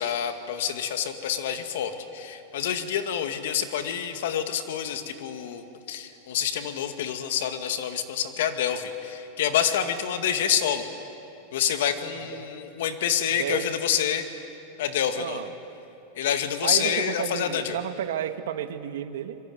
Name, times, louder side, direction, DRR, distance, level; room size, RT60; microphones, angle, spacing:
voice 1, 0.0-10.9 11.5-14.2 14.8-15.4 16.2-17.8, left 9 dB, 75° left, 7 dB, 2.2 m, -27 dB
voice 2, 13.3-13.7 15.2-15.5 16.6-19.4, right 10 dB, 80° right, 10 dB, 1.4 m, -32 dB
26.0 x 23.0 x 9.5 m, 2.9 s
supercardioid pair, 160°, 0 cm